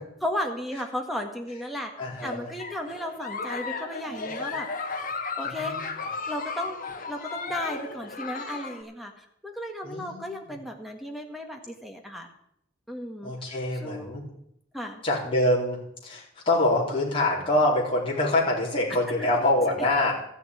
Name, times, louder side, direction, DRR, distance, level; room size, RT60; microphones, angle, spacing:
voice 1, 0.2-1.9 2.2-4.7 5.4-5.7 6.3-12.3 12.9-13.3 13.8-14.2 14.7-15.0, left 1 dB, ahead, 3 dB, 1.6 m, -34 dB
voice 2, 2.0-2.5 5.4-5.8 9.8-10.5 13.2-14.2 15.0-20.1, left 1 dB, 25° left, -5 dB, 4.2 m, -25 dB
Giggle, 2.1-8.8, left 4 dB, 40° left, 1.4 m, -35 dB
14.0 x 7.1 x 9.4 m, 0.76 s
head